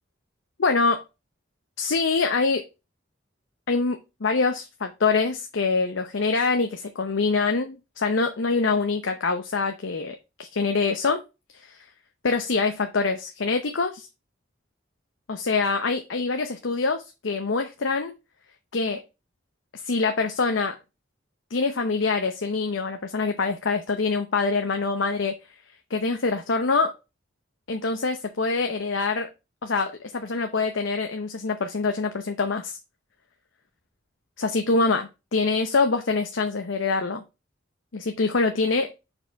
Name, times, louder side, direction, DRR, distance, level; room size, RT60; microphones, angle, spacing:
voice 1, 0.6-1.0 1.8-2.6 3.7-11.2 11.6-11.8 12.2-14.1 15.3-18.1 18.7-19.0 19.8-20.8 21.5-25.3 25.9-26.9 27.7-29.3 29.6-32.8 34.4-37.2 37.9-38.9, left 4 dB, 75° left, 6 dB, 0.7 m, -25 dB
4.9 x 4.3 x 5.6 m, 0.26 s
head